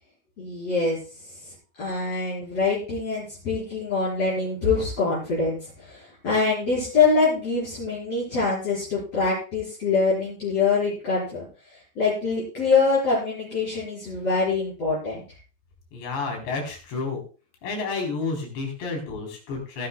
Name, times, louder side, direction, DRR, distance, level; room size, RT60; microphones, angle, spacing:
voice 1, 0.4-15.2, left 4 dB, 35° left, -8 dB, 5.9 m, -25 dB
voice 2, 15.9-17.2 17.6-19.9, left 4 dB, 80° left, 2 dB, 6.3 m, -30 dB
19.5 x 11.5 x 2.3 m, 0.34 s
omnidirectional pair, 4.9 m